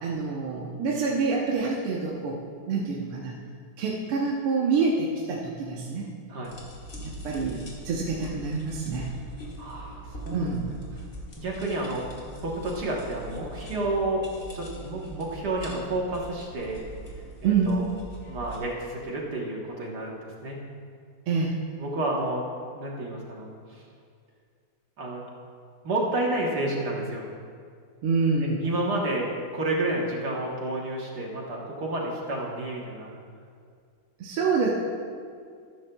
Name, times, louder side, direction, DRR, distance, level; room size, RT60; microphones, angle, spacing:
voice 1, 0.0-2.4 2.7-3.4 3.8-6.1 7.0-7.6 7.8-9.1 10.3-10.7 17.4-17.8 21.3-21.5 28.0-28.6 34.2-34.7, right 4 dB, 80° right, -4 dB, 1.9 m, -26 dB
sound 1, 6.4-18.6, right 2 dB, 35° left, 2.1 m, -42 dB
voice 2, 9.6-10.5 10.9-11.0 11.4-14.2 14.5-16.8 17.4-17.8 18.3-20.6 21.8-22.4 22.7-23.9 25.0-25.2 25.8-27.3 28.4-33.1, right 2 dB, 55° right, -2 dB, 1.6 m, -30 dB
14.0 x 13.0 x 2.3 m, 2.2 s
omnidirectional pair, 2.4 m